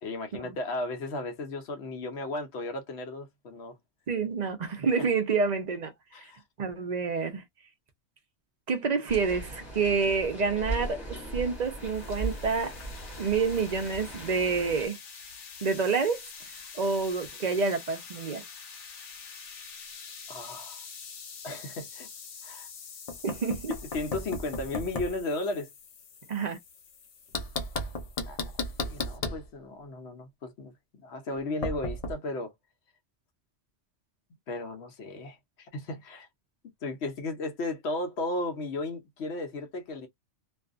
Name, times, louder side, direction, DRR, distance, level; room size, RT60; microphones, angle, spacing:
voice 1, 0.0-3.7 6.1-6.4 20.3-20.8 21.4-22.1 22.4-22.7 23.9-25.7 28.3-28.4 28.8-30.7 31.0-32.5 34.5-36.3 36.8-40.1, left 2 dB, 70° left, 0.9 m, -35 dB
voice 2, 4.1-5.9 6.2-6.3 6.6-7.4 8.7-12.7 13.2-15.0 15.6-18.4 23.2-23.7 26.3-26.6, right 5 dB, 45° right, 0.6 m, -28 dB
sound 1, 9.1-14.9, right 2 dB, 20° left, 1.4 m, -38 dB
sound 2, 11.0-29.2, left 6 dB, 85° left, 1.1 m, -47 dB
Knock, 23.1-25.2 27.3-29.5 31.6-32.1, left 2 dB, 45° left, 0.5 m, -34 dB
2.6 x 2.4 x 2.4 m
omnidirectional pair, 1.2 m